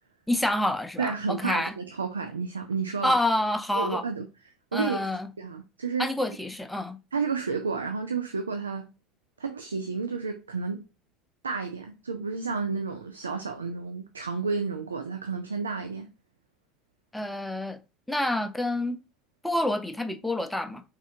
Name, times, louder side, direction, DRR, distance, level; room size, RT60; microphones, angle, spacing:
voice 1, 0.3-1.7 3.0-4.0 4.7-5.3 6.0-7.0 17.1-17.8 18.1-19.0 19.4-20.8, left 1 dB, 5° left, 0.5 m, -28 dB
voice 2, 1.0-3.2 3.7-4.3 4.7-5.1 5.4-6.1 7.1-8.9 9.4-10.8 11.4-16.1, right 5 dB, 80° right, 0.3 m, -31 dB
3.6 x 3.3 x 2.7 m
figure-of-eight pair, 70°, 0 cm